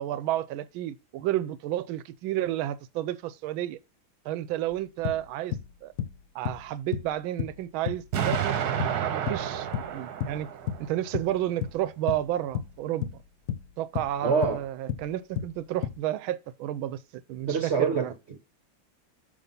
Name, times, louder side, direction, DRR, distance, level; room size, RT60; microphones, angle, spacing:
voice 1, 0.0-3.8 4.2-5.6 5.8-5.9 6.3-10.5 10.8-13.1 13.8-18.1, right 13 dB, 90° right, 1.4 m, -31 dB
sound 1, 4.7-4.8 5.0-5.7 6.0-6.7 6.9-7.1 7.4-7.6 7.9-8.5 8.8-10.0 10.2-10.9 11.1-11.8 12.1-12.3 12.5-13.2 13.5-14.2 14.4-14.6 14.9-15.1 15.4-16.0, left 10 dB, 70° left, 0.8 m, -32 dB
Explosion, 8.1-11.1, right 9 dB, 60° right, 1.2 m, -30 dB
voice 2, 14.2-14.6 17.5-18.4, right 5 dB, 45° right, 1.0 m, -26 dB
7.5 x 5.5 x 5.4 m
omnidirectional pair, 2.2 m